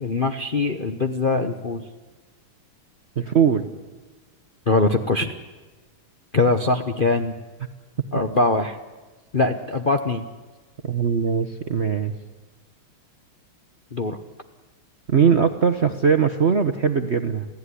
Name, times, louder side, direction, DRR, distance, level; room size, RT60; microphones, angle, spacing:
voice 1, 0.0-1.9 4.7-5.3 6.3-7.3 8.1-8.8 9.3-10.2 13.9-14.2, left 3 dB, 40° left, 5 dB, 0.8 m, -22 dB
voice 2, 3.2-3.7 10.8-12.1 15.1-17.5, right 6 dB, 45° right, 7 dB, 0.9 m, -20 dB
28.0 x 16.0 x 9.9 m, 1.3 s
omnidirectional pair, 2.4 m